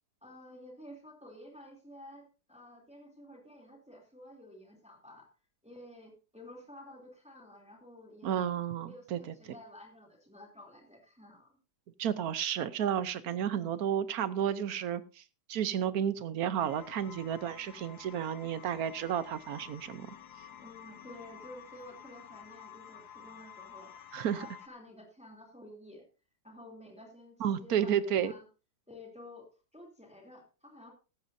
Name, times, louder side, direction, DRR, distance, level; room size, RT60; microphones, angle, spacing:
voice 1, 0.2-5.3 5.6-8.5 8.8-11.6 20.6-26.0 26.4-28.5 28.9-29.5 29.7-30.9, left 1 dB, 5° right, 0 dB, 2.8 m, -52 dB
voice 2, 8.2-9.2 12.0-15.2 15.5-20.1 24.1-24.5 27.4-28.3, right 9 dB, 65° right, 15 dB, 1.2 m, -32 dB
sound 1, 16.6-24.7, left 9 dB, 70° left, 1.5 m, -51 dB
15.0 x 12.5 x 2.7 m, 0.32 s
omnidirectional pair, 1.8 m